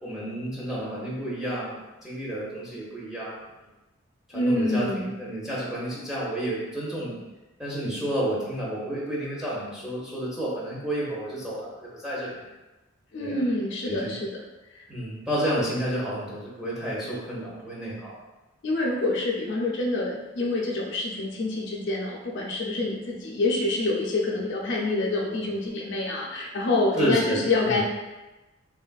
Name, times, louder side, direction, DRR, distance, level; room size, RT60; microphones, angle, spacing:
voice 1, 0.0-3.4 4.3-7.2 7.6-12.4 13.2-13.4 13.8-14.1 14.9-18.1 27.0-27.8, right 1 dB, 5° right, -7 dB, 0.6 m, -30 dB
voice 2, 4.3-5.2 13.1-14.4 14.8-14.9 18.6-27.8, left 2 dB, 55° left, -2 dB, 0.4 m, -27 dB
3.2 x 2.3 x 2.2 m, 1.1 s
head